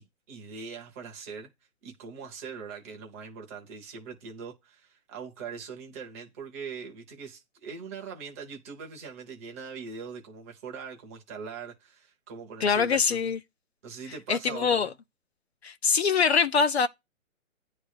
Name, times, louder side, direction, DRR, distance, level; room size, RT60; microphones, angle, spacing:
voice 1, 0.0-1.5 1.8-13.3 13.8-14.9, right 5 dB, 10° right, 0.7 m, -41 dB
voice 2, 12.6-13.4 14.3-14.9 15.6-16.9, left 5 dB, 55° left, 0.5 m, -23 dB
9.6 x 3.3 x 6.4 m
hypercardioid pair, 160°, 41 cm